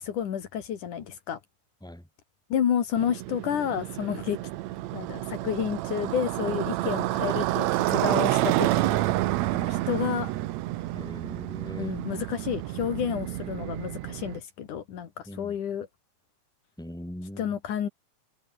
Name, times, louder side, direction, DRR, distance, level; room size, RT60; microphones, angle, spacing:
voice 1, 0.0-1.4 2.5-4.4 4.9-9.0 9.5-10.3 11.8-15.9 17.4-17.9, left 9 dB, 80° left, 3.7 m, -30 dB
Motorcycle, 3.0-14.4, right 16 dB, 75° right, 1.9 m, -29 dB
voice 2, 10.9-12.0 15.3-15.6 16.8-17.6, left 1 dB, ahead, 3.9 m, -41 dB
omnidirectional pair, 3.5 m